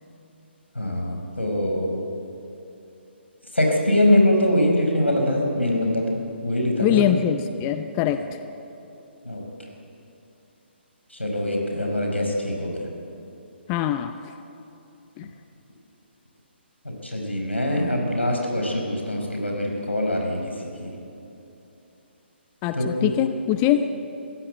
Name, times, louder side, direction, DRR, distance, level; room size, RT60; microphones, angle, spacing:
voice 1, 0.7-2.0 3.5-6.2 6.4-7.0 9.2-9.4 11.2-12.8 17.0-20.4 20.8-20.9 22.7-23.1, left 1 dB, 85° left, 1 dB, 5.1 m, -23 dB
voice 2, 6.8-8.2 13.7-14.2 15.2-15.3 22.6-23.9, left 11 dB, 20° left, 9 dB, 0.6 m, -23 dB
23.0 x 16.0 x 8.0 m, 2.9 s
figure-of-eight pair, 135°, 6 cm